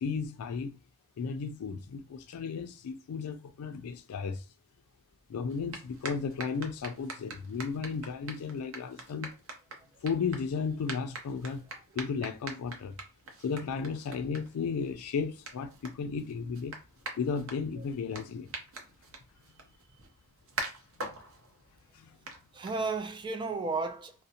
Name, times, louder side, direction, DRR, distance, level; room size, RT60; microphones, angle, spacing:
voice 1, 0.0-0.8 1.2-4.4 5.3-9.3 10.0-11.6 12.0-13.0 13.4-16.7 17.2-18.5 21.1-21.2 22.0-22.1, left 5 dB, 85° left, 0.4 m, -34 dB
sound 1, 5.5-23.2, right 3 dB, 65° right, 0.6 m, -45 dB
voice 2, 22.5-24.2, right 4 dB, 20° right, 0.3 m, -34 dB
2.5 x 2.0 x 2.7 m
head